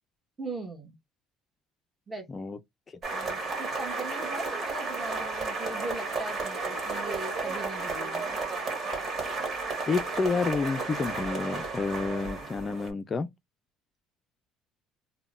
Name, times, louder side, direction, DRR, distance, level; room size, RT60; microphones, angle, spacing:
voice 1, 0.4-1.0 2.1-2.5 3.1-8.3, right 2 dB, 15° right, 1.2 m, -39 dB
sound 1, 3.0-12.9, right 3 dB, 40° right, 1.6 m, -33 dB
voice 2, 9.9-13.3, left 4 dB, 30° left, 0.4 m, -29 dB
3.6 x 2.1 x 2.4 m
cardioid pair, 110°, 0 cm